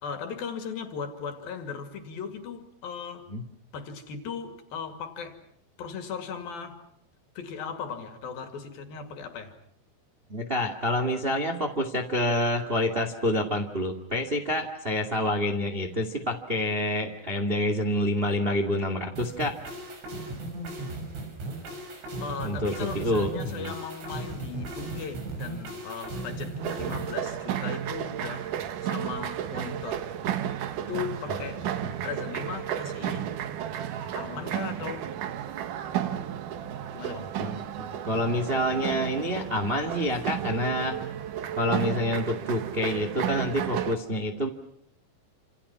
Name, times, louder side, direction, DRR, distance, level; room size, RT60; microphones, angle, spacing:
voice 1, 0.0-3.3 3.7-5.4 5.8-6.9 7.4-9.6 22.2-30.1 30.8-31.7 32.0-33.4 34.1-35.1 36.9-37.4, left 6 dB, 55° left, 7 dB, 3.8 m, -37 dB
voice 2, 10.3-19.6 22.4-23.7 31.4-31.5 31.9-32.0 37.4-41.0 41.6-44.5, left 1 dB, 30° right, 5 dB, 1.1 m, -28 dB
sound 1, 19.2-27.1, right 2 dB, 80° right, 8.4 m, -36 dB
sound 2, 26.6-44.0, right 10 dB, 65° right, 2.2 m, -33 dB
29.0 x 28.0 x 5.9 m, 0.70 s
omnidirectional pair, 5.4 m